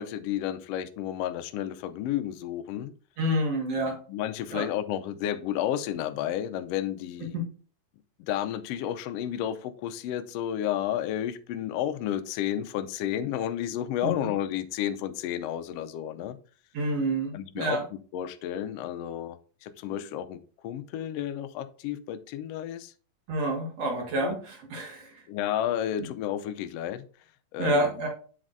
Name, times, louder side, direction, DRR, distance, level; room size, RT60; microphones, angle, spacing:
voice 1, 0.0-2.9 3.8-7.3 8.2-16.4 17.3-17.8 18.1-22.9 24.2-24.4 25.3-27.0 27.5-27.9, left 11 dB, 80° left, 10 dB, 1.5 m, -32 dB
voice 2, 3.2-4.0 4.5-4.6 7.3-7.4 14.0-14.1 16.7-17.8 23.3-25.2 27.6-28.1, right 1 dB, 60° right, 1 dB, 2.7 m, -28 dB
7.5 x 7.1 x 2.6 m, 0.41 s
omnidirectional pair, 3.3 m